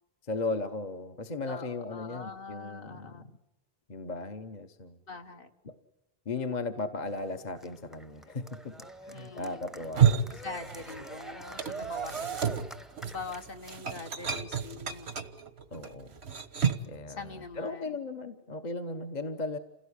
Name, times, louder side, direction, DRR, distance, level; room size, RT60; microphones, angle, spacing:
voice 1, 0.3-3.3 3.9-5.0 5.6-5.7 6.3-10.4 15.7-16.2 16.9-17.3 17.6-19.6, left 3 dB, 45° left, 7 dB, 1.2 m, -36 dB
voice 2, 1.5-3.3 5.1-5.5 9.1-9.6 10.3-12.4 13.0-15.1 17.1-18.0, left 4 dB, 60° left, 5 dB, 1.7 m, -43 dB
Cheering, 7.0-14.0, right 4 dB, ahead, 0.8 m, -43 dB
sound 1, 9.7-11.2 11.4-17.0, right 7 dB, 90° right, 1.5 m, -30 dB
28.0 x 17.0 x 10.0 m, 0.95 s
omnidirectional pair, 1.0 m